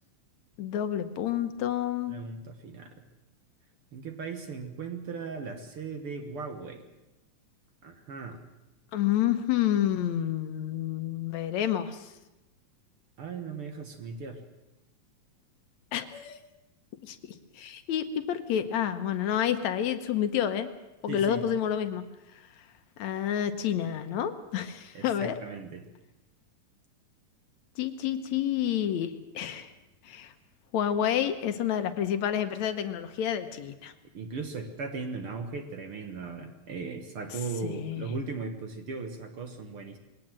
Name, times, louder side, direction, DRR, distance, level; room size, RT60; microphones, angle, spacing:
voice 1, 0.6-2.1 8.9-12.1 15.9-16.4 17.0-17.2 17.6-20.7 21.0-22.0 23.0-25.4 27.8-29.7 30.0-30.3 30.7-33.9 37.6-38.1, left 10 dB, 70° left, 9 dB, 2.2 m, -29 dB
voice 2, 2.1-3.1 3.9-6.8 7.8-8.4 13.2-14.4 21.1-21.5 24.9-25.9 34.1-40.0, right 4 dB, 55° right, 6 dB, 1.9 m, -38 dB
21.0 x 17.5 x 7.6 m, 0.98 s
omnidirectional pair, 3.5 m